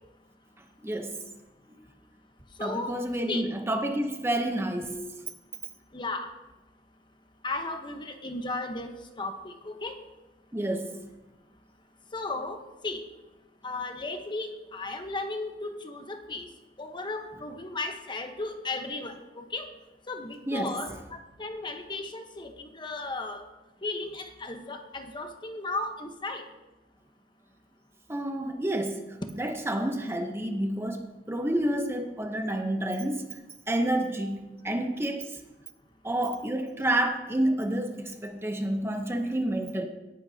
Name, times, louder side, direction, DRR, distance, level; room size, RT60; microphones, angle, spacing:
voice 1, 0.8-1.2 1.7-1.8 2.6-5.1 10.5-11.0 20.5-20.7 28.1-29.0 29.3-31.0 31.3-33.2 33.7-35.3 36.0-39.9, right 1 dB, 15° right, 4 dB, 0.9 m, -29 dB
voice 2, 2.6-3.0 3.3-3.5 5.9-6.3 7.4-10.0 12.1-13.0 13.6-16.5 16.8-19.7 20.1-23.4 23.8-26.4, left 2 dB, 25° left, 5 dB, 1.0 m, -35 dB
17.5 x 11.0 x 2.8 m, 1.1 s
head